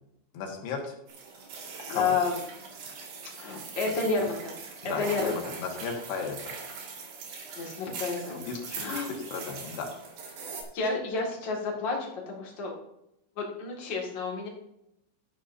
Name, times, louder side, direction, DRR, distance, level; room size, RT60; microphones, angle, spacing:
voice 1, 0.3-0.9 1.9-2.2 3.9-4.0 4.8-6.5 8.3-9.9, left 5 dB, 65° left, 2 dB, 3.2 m, -35 dB
sound 1, 1.1-10.6, right 5 dB, 60° right, 3.7 m, -41 dB
voice 2, 1.8-2.4 3.4-4.5 5.0-5.3 7.6-8.3 8.7-9.2 10.7-12.7 13.4-14.5, left 4 dB, 80° left, -2 dB, 1.0 m, -30 dB
12.5 x 10.0 x 2.7 m, 0.83 s
omnidirectional pair, 5.8 m